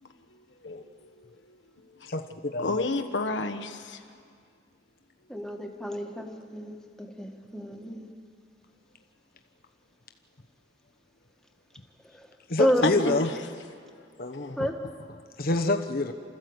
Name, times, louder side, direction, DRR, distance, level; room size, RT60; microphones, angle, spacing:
voice 1, 0.0-2.1 2.6-4.0 12.8-12.9 13.2-13.4, left 3 dB, 80° left, 5 dB, 1.4 m, -32 dB
voice 2, 2.1-2.7 12.5-13.3 14.2-14.6 15.4-16.1, left 2 dB, 55° left, 5 dB, 1.0 m, -27 dB
voice 3, 5.3-8.1 12.1-12.3 12.6-13.2 14.6-14.7, equal, 5° left, 2 dB, 1.7 m, -30 dB
29.5 x 14.0 x 8.0 m, 2.2 s
head